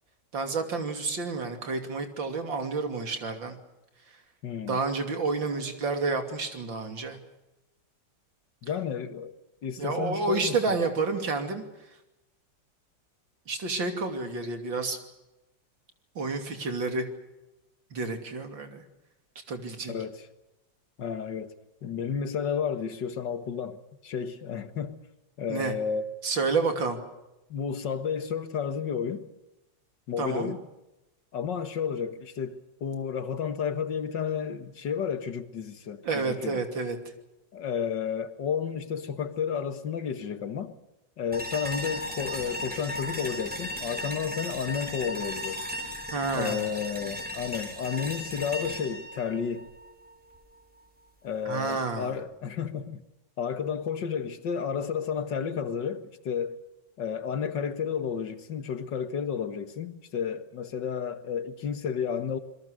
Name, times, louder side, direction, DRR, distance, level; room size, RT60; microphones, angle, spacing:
voice 1, 0.3-3.6 4.7-7.2 9.8-11.6 13.5-15.0 16.2-17.1 17.9-18.8 19.5-19.9 25.5-25.7 26.2-27.0 30.2-30.5 36.0-37.0 46.1-46.6 51.5-52.1, right 3 dB, 90° right, 3.6 m, -29 dB
voice 2, 4.4-4.8 8.6-9.3 9.6-10.8 19.9-20.3 21.0-23.8 24.0-25.0 25.4-26.0 27.5-29.3 30.1-30.6 31.3-36.6 37.5-40.7 41.2-45.6 46.3-49.7 51.2-53.0 53.4-56.6 57.0-62.4, left 7 dB, 70° left, 2.2 m, -32 dB
sound 1, 41.3-50.4, left 1 dB, 5° right, 4.5 m, -36 dB
27.5 x 21.5 x 6.5 m
omnidirectional pair, 2.0 m